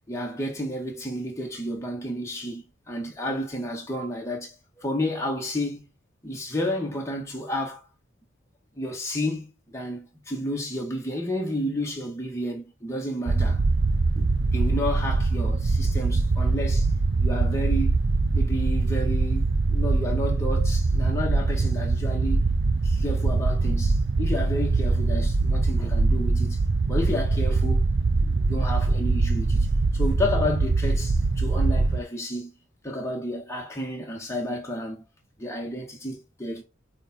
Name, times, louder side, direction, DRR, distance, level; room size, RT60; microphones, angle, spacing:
voice 1, 0.1-5.9 6.2-7.8 8.8-13.6 14.1-16.9 17.2-17.9 18.3-22.4 22.8-26.6 26.9-27.8 28.2-29.7 29.9-32.5 32.8-35.0 35.4-36.6, left 1 dB, 15° left, 1.9 m, -31 dB
sound 1, 13.3-32.0, right 3 dB, 60° right, 0.6 m, -23 dB
8.9 x 3.7 x 4.5 m
head